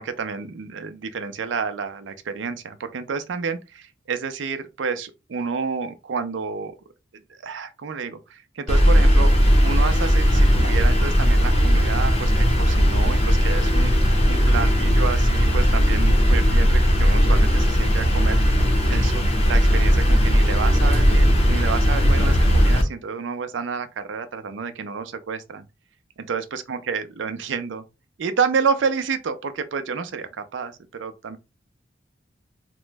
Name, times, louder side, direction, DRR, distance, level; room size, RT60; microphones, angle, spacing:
voice 1, 0.0-6.7 7.4-9.3 9.6-13.9 14.3-18.4 18.9-25.7 26.2-27.8 28.2-31.4, right 5 dB, 80° right, 0.5 m, -29 dB
sound 1, 8.7-22.8, equal, 35° left, 0.6 m, -17 dB
2.9 x 2.1 x 3.3 m
head